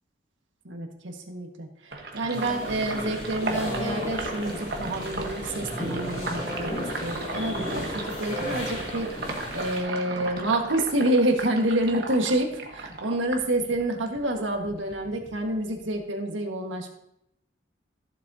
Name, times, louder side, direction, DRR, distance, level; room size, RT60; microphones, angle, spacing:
voice 1, 0.6-6.7 7.0-16.9, right 1 dB, 85° right, 3 dB, 1.6 m, -28 dB
Sink (filling or washing), 1.9-14.2 14.5-15.9, right 2 dB, 55° right, 1.3 m, -36 dB
sound 1, 2.3-9.8, left 1 dB, 45° left, 3.2 m, -34 dB
15.0 x 7.3 x 2.8 m, 0.79 s
head